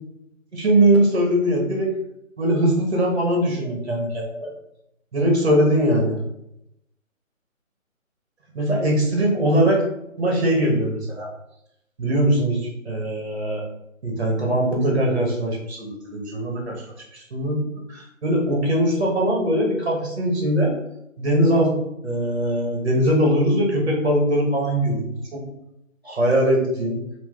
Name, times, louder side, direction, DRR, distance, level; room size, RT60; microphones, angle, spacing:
voice 1, 0.5-1.9 2.4-4.5 5.1-6.2 8.5-9.8 10.2-11.3 12.0-13.6 14.0-16.8 17.1-17.6 17.9-20.7 21.2-21.7 22.0-25.4 26.0-27.0, right 1 dB, 50° right, 0 dB, 1.5 m, -21 dB
4.0 x 3.0 x 3.7 m, 0.83 s
hypercardioid pair, 170°, 40 cm